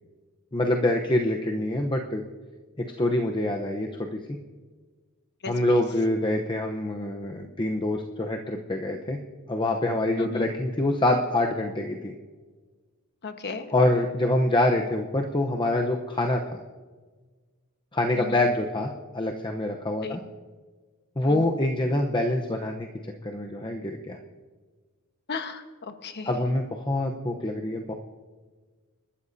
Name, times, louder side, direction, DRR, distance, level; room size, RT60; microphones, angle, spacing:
voice 1, 0.5-2.2 3.0-4.2 5.4-9.2 9.5-12.1 13.7-16.6 17.9-20.2 21.2-22.9 23.2-24.2 26.2-27.9, left 1 dB, 20° left, 2 dB, 0.8 m, -25 dB
voice 2, 10.2-10.5 13.2-13.7 18.2-18.4 20.0-20.2 21.3-21.5 25.3-26.3, left 4 dB, 50° left, 7 dB, 1.2 m, -35 dB
29.5 x 12.5 x 2.7 m, 1.4 s
head